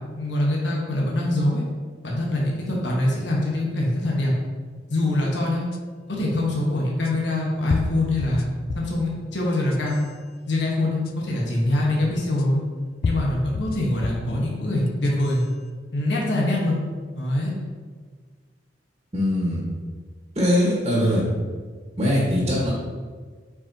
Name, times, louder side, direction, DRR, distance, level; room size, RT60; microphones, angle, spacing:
voice 1, 0.2-1.6 2.0-4.3 4.9-5.7 6.1-8.5 8.7-10.0 10.5-12.6 13.0-15.4 15.9-16.8 17.1-17.5, left 1 dB, 80° left, -3 dB, 1.3 m, -24 dB
sound 1, 5.7-5.8 7.0-7.1 7.7-9.0 9.5-10.1 11.0-11.1 12.4-12.5 13.0-14.3 14.9-15.4, left 3 dB, 50° left, 0.4 m, -30 dB
voice 2, 19.1-19.6 20.3-21.2 22.0-22.7, equal, 35° right, -5 dB, 1.5 m, -21 dB
8.2 x 4.9 x 2.8 m, 1.5 s
head